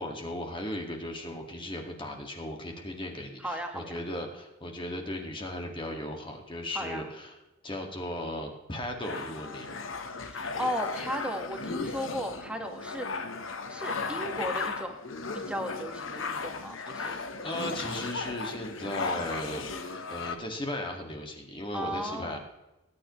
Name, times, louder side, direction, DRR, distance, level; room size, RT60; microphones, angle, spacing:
voice 1, 0.0-7.4 7.6-9.7 16.9-22.4, left 1 dB, 25° left, 2 dB, 2.0 m, -37 dB
voice 2, 3.4-3.9 6.7-7.1 10.2-13.1 13.7-15.0 15.3-17.2 21.7-22.4, equal, 5° right, 4 dB, 1.6 m, -35 dB
sound 1, 9.0-20.4, left 4 dB, 85° left, 1.2 m, -36 dB
19.0 x 9.7 x 3.2 m, 1.0 s
head